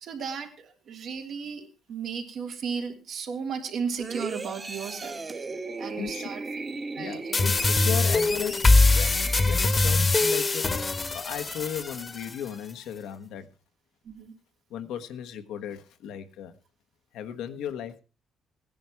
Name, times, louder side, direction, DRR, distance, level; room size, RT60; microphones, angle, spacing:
voice 1, 0.0-5.2 5.8-6.4 6.9-7.7 11.5-11.6 14.0-14.3, right 6 dB, 70° right, 3 dB, 3.2 m, -35 dB
sound 1, 4.0-10.1 10.5-10.7, right 3 dB, 30° right, 1.6 m, -37 dB
voice 2, 5.9-6.3 7.0-10.7 11.1-13.5 14.7-16.5 17.1-18.0, left 9 dB, 90° left, 9 dB, 1.3 m, -36 dB
sound 2, 7.3-12.3, left 3 dB, 30° left, 1.2 m, -22 dB
16.5 x 10.5 x 4.7 m, 0.32 s
cardioid pair, 90°, 0 cm